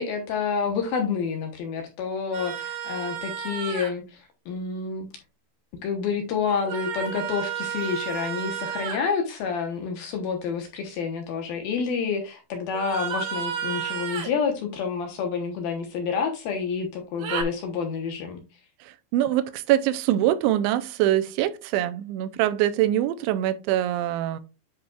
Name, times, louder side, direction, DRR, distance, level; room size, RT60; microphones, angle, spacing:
voice 1, 0.0-5.1 5.8-18.4, left 6 dB, 70° left, 2.3 m, -28 dB
sound 1, 2.3-3.9 6.5-9.0 12.7-14.3 17.2-17.4, right 8 dB, 65° right, 3.2 m, -32 dB
voice 2, 18.8-24.4, right 13 dB, 85° right, 2.9 m, -24 dB
10.5 x 5.7 x 2.4 m
omnidirectional pair, 5.5 m